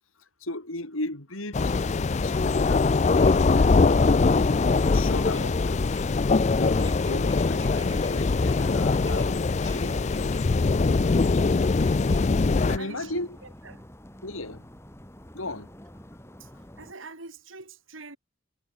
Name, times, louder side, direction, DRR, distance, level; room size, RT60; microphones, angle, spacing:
voice 1, 0.4-4.4 4.8-6.0 6.2-10.7 12.5-13.4 14.2-14.7 15.3-15.7, left 2 dB, 85° left, 4.9 m, -37 dB
sound 1, 1.5-12.8, left 3 dB, 35° left, 0.4 m, -22 dB
sound 2, 3.0-13.7, right 4 dB, 25° right, 7.4 m, -54 dB
sound 3, 4.5-16.9, equal, 15° left, 3.6 m, -47 dB
voice 2, 12.8-13.2 13.6-13.8 16.4-16.5 16.8-18.2, right 3 dB, 75° right, 3.6 m, -44 dB
head